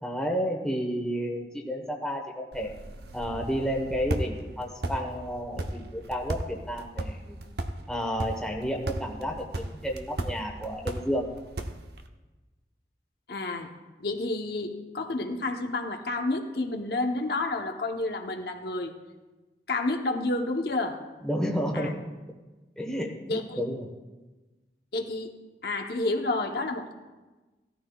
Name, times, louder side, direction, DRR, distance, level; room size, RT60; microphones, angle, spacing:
voice 1, 0.0-2.7 3.1-7.4 7.9-11.3 21.2-22.1 22.8-23.9, equal, 5° left, 0 dB, 1.1 m, -31 dB
sound 1, 2.5-12.1, right 1 dB, 65° right, 0.8 m, -36 dB
voice 2, 13.3-13.7 14.0-19.0 19.7-21.0 21.7-21.9 23.3-23.6 24.9-25.4 25.6-26.9, left 2 dB, 60° left, 3 dB, 0.9 m, -30 dB
17.0 x 13.0 x 2.3 m, 1.2 s
head